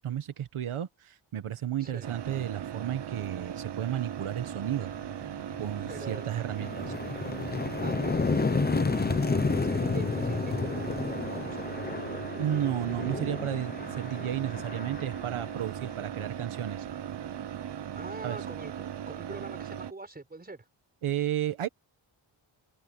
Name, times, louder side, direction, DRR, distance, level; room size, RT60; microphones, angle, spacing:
voice 1, 0.0-4.9 5.6-6.9 12.4-16.9 18.2-18.4 21.0-21.7, right 11 dB, 90° right, 1.5 m, -33 dB
voice 2, 1.8-2.1 5.9-6.3 7.8-12.1 18.0-20.7, right 2 dB, 20° right, 4.9 m, -44 dB
sound 1, 2.0-19.9, right 9 dB, 55° right, 0.9 m, -38 dB
sound 2, 4.8-5.0 5.4-16.2, left 4 dB, 20° left, 0.7 m, -31 dB
wide cardioid pair, 175°, 48 cm